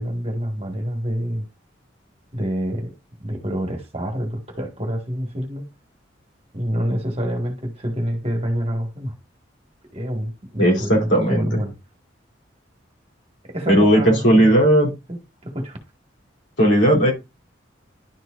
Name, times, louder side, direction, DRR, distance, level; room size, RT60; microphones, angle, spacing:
voice 1, 0.0-1.5 2.3-2.9 3.2-5.7 6.5-9.1 9.9-11.7 13.4-14.5 15.1-15.8, equal, 30° right, 1.7 m, -27 dB
voice 2, 10.6-11.5 13.7-14.9 16.6-17.1, equal, 75° left, 3.4 m, -16 dB
11.0 x 4.6 x 2.5 m
head